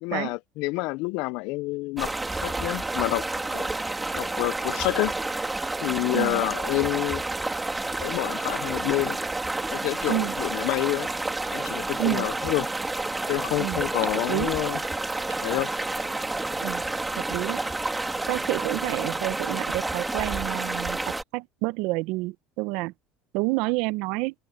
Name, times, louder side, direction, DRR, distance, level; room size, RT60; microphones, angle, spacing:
voice 1, 0.0-2.1 2.4-3.2 3.5-3.7 4.1-5.1 5.8-7.2 8.0-9.2 9.7-11.1 11.5-12.7 13.3-14.8 15.4-15.7, left 23 dB, 70° left, 0.5 m, -28 dB
sound 1, 2.0-21.2, right 2 dB, 10° right, 3.0 m, -30 dB
voice 2, 17.3-17.6 18.3-21.0 21.3-22.9 23.3-24.3, right 22 dB, 70° right, 0.8 m, -28 dB
supercardioid pair, 90°, 0 cm